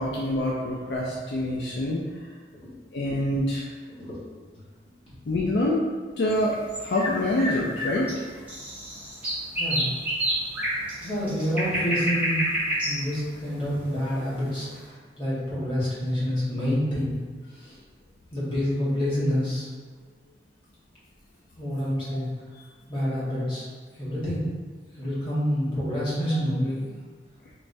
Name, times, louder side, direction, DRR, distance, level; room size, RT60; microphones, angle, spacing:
voice 1, 0.0-2.0 2.9-3.7 5.3-5.9 6.2-8.1, left 1 dB, 70° left, -4 dB, 0.4 m, -26 dB
sound 1, 6.3-14.5, equal, 10° right, 1.0 m, -29 dB
voice 2, 9.6-9.9 11.0-12.4 12.8-14.8 15.2-17.2 17.6-17.7 18.3-19.7 21.6-22.3 22.9-23.6 24.0-24.5 25.0-26.9, equal, 30° left, -10 dB, 1.3 m, -27 dB
3.2 x 3.2 x 2.6 m, 1.5 s
head